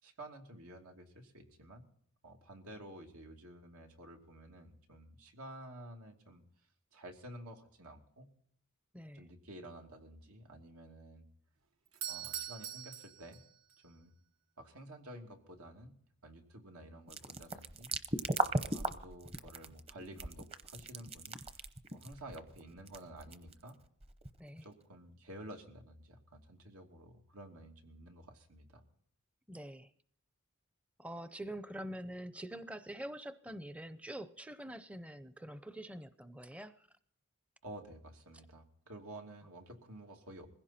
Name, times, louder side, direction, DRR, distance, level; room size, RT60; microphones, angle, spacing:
voice 1, 0.0-1.9 2.2-6.4 6.9-8.3 9.1-11.2 12.1-13.4 13.8-14.1 14.6-16.0 16.2-23.8 24.6-28.8 37.6-40.5, right 1 dB, 90° right, 3 dB, 2.8 m, -51 dB
voice 2, 8.9-9.3 24.4-24.7 29.5-29.9 31.0-36.9, right 1 dB, 5° right, 12 dB, 0.5 m, -45 dB
Doorbell, 11.9-13.8, right 10 dB, 70° right, 1.2 m, -43 dB
sound 1, 17.1-24.7, right 2 dB, 25° right, 0.9 m, -38 dB
21.0 x 16.0 x 4.3 m, 0.62 s
head